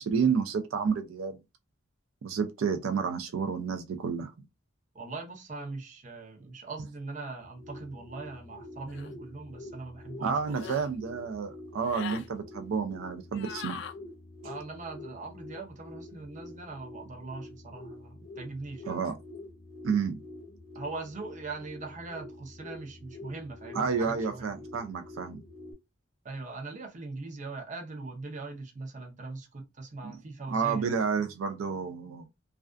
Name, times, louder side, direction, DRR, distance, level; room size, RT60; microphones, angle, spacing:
voice 1, 0.0-1.4 2.2-4.3 10.2-13.8 18.9-19.1 19.8-20.2 23.7-25.4 30.0-30.2 30.5-32.3, right 6 dB, 85° right, 0.4 m, -30 dB
voice 2, 4.9-10.4 10.6-10.8 14.4-19.0 20.7-24.6 26.2-30.9, right 3 dB, 40° right, 0.6 m, -41 dB
sound 1, 7.4-25.7, left 2 dB, 85° left, 0.7 m, -47 dB
sound 2, 8.9-9.1 10.4-10.9 11.8-12.3 13.3-13.9, left 7 dB, 60° left, 0.3 m, -41 dB
2.4 x 2.2 x 2.3 m
head